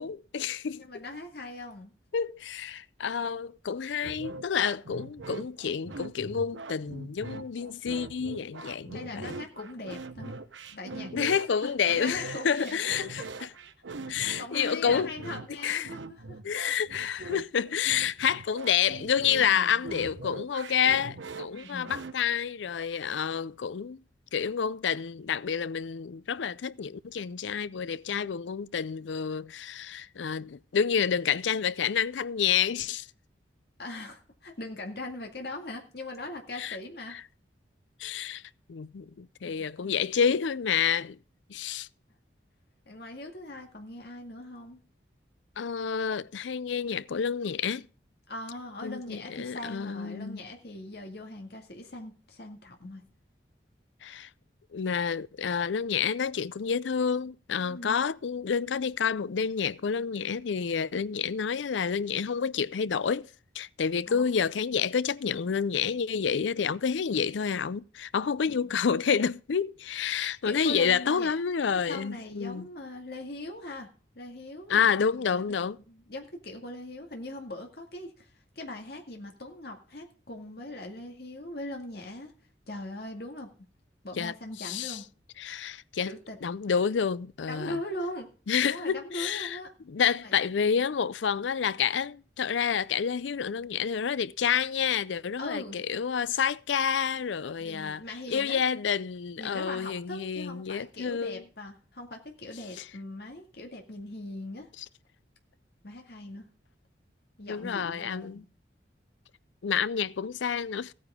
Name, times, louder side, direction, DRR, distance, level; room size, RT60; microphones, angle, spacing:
voice 1, 0.0-0.8 2.1-9.3 11.1-13.5 14.1-15.1 15.6-15.9 16.4-24.0 24.3-33.1 36.6-36.8 37.1-37.2 38.0-38.4 38.7-41.2 41.5-41.9 45.6-47.8 48.8-50.4 54.0-54.3 54.7-63.3 63.6-72.7 74.7-75.8 84.2-84.3 84.6-85.0 85.4-86.1 86.4-87.8 88.5-89.6 89.9-98.0 98.3-101.4 102.8-102.9 107.5-108.4 109.6-110.9, left 7 dB, 85° left, 0.5 m, -29 dB
voice 2, 0.7-1.9 8.9-10.3 10.8-11.7 12.0-12.8 13.1-13.2 14.2-16.4 19.4-19.8 21.5-21.9 33.8-37.2 39.4-39.9 42.9-44.8 48.3-53.0 57.6-58.0 64.1-64.3 68.2-68.8 70.4-71.3 71.7-73.9 74.2-74.9 75.2-75.5 75.9-78.3 78.6-82.3 82.7-83.5 84.0-85.0 86.1-86.6 87.5-88.3 88.6-89.7 90.2-90.3 95.4-95.8 97.6-98.6 99.4-104.7 105.8-106.5 107.4-108.5, left 2 dB, 60° left, 2.1 m, -40 dB
sound 1, 4.0-22.1, right 3 dB, 85° right, 1.0 m, -42 dB
16.0 x 9.4 x 3.6 m
head